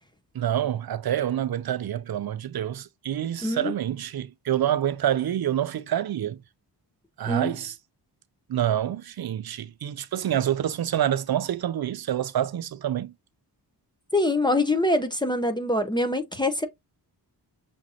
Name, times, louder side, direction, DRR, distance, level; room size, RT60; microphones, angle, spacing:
voice 1, 0.3-6.4 7.2-7.8 8.5-13.1, right 11 dB, 60° right, 0.5 m, -27 dB
voice 2, 3.4-3.7 7.3-7.5 14.1-16.7, left 1 dB, 10° left, 0.5 m, -24 dB
6.2 x 2.6 x 2.7 m
wide cardioid pair, 170°, 41 cm